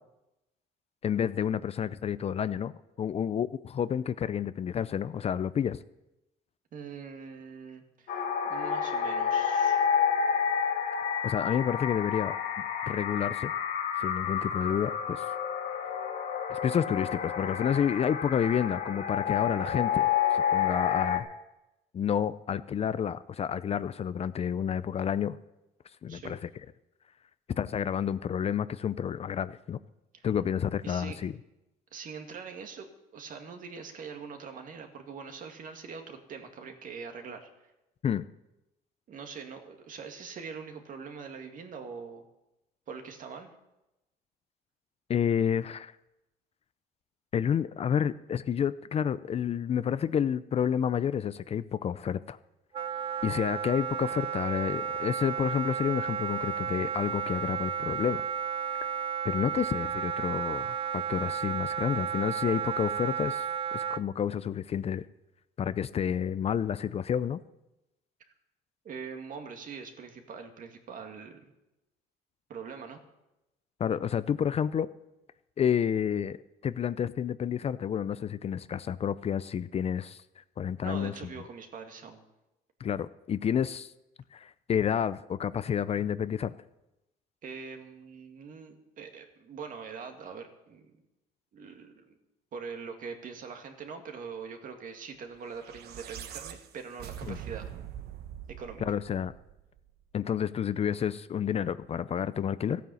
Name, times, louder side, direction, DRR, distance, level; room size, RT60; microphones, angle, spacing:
voice 1, 1.0-2.7 3.0-5.8 11.2-12.4 12.9-13.5 14.0-15.2 16.5-21.3 21.9-25.4 26.0-26.4 27.6-29.8 30.2-31.3 38.0-38.2 45.1-45.9 47.3-52.4 53.2-58.2 58.8-63.5 63.7-65.1 65.6-67.4 73.8-74.9 75.6-76.4 76.6-80.2 80.6-81.1 82.8-83.9 84.3-86.5 97.3-97.4 98.9-99.3 100.1-102.8, left 8 dB, 35° left, 15 dB, 0.5 m, -30 dB
voice 2, 6.7-9.9 26.1-26.3 30.1-30.3 30.8-31.2 31.9-32.9 33.1-37.5 39.1-42.2 42.9-43.5 68.8-71.5 72.5-73.0 80.8-82.2 87.4-90.9 91.5-92.2 92.5-97.7 98.6-98.8, right 5 dB, 50° right, 5 dB, 2.1 m, -43 dB
sound 1, 8.1-21.2, left 7 dB, 65° left, 2.3 m, -29 dB
Wind instrument woodwind instrument, 52.7-64.0, right 8 dB, 35° right, 0.4 m, -33 dB
sound 2, 95.5-99.9, right 10 dB, 70° right, 1.1 m, -43 dB
14.5 x 9.2 x 7.1 m, 0.95 s
cardioid pair, 110°, 17 cm